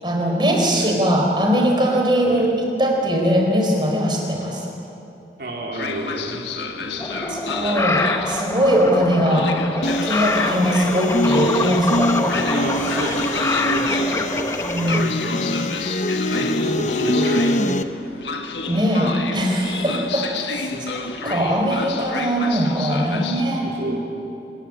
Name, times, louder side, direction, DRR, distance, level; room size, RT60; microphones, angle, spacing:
voice 1, 0.0-4.7 7.3-9.5 10.0-12.4 14.6-15.2 18.7-23.7, equal, 25° right, 0 dB, 4.3 m, -21 dB
voice 2, 5.4-6.4 6.8-7.9 12.5-15.1 16.3-18.4 19.8-20.1 20.7-20.8 23.6-24.0, right 1 dB, 60° right, -2 dB, 3.5 m, -30 dB
Train, 5.7-23.4, left 4 dB, 85° left, 1.5 m, -31 dB
sound 1, 7.0-15.0, left 2 dB, 15° left, 0.9 m, -26 dB
sound 2, 9.8-17.8, left 1 dB, 45° left, 0.9 m, -24 dB
25.0 x 15.5 x 9.9 m, 2.8 s
head